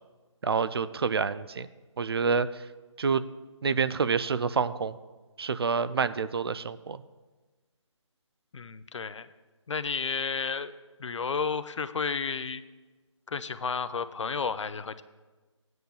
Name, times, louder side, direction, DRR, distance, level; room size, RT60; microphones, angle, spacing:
voice 1, 0.4-1.7 2.0-2.5 3.0-3.2 3.6-5.0 5.4-7.0, right 5 dB, 50° right, 14 dB, 0.4 m, -27 dB
voice 2, 8.5-9.3 9.7-10.7 11.0-12.6 13.3-15.0, left 5 dB, 70° left, 13 dB, 0.6 m, -32 dB
15.5 x 9.3 x 2.3 m, 1.2 s
figure-of-eight pair, 165°, 16 cm